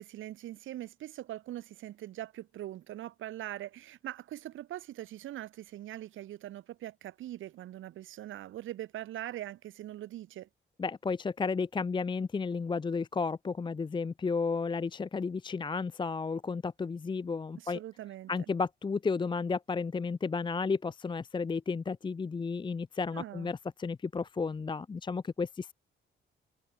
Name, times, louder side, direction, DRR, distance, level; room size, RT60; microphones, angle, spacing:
voice 1, 0.0-10.5 17.6-18.3 23.1-23.5, right 13 dB, 80° right, 3.4 m, -42 dB
voice 2, 10.8-17.8 18.3-25.7, left 4 dB, 25° left, 0.6 m, -33 dB
cardioid pair, 90°, 20 cm